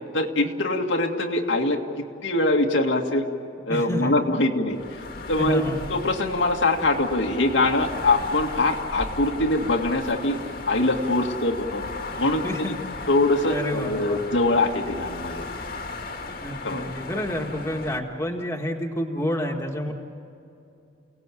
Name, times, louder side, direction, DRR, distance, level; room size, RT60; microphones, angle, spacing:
voice 1, 0.1-1.8 2.2-3.3 3.7-4.8 5.3-5.6 5.9-10.4 10.7-11.8 12.2-12.4 13.1-15.4 16.6-16.8, left 2 dB, 85° left, 2 dB, 2.0 m, -23 dB
voice 2, 3.7-4.1 5.4-5.8 12.4-13.1 13.5-14.2 16.4-19.9, equal, 15° left, 1 dB, 1.8 m, -29 dB
sound 1, 4.7-18.0, left 3 dB, 50° left, 1.8 m, -36 dB
29.5 x 18.0 x 8.5 m, 2.6 s
head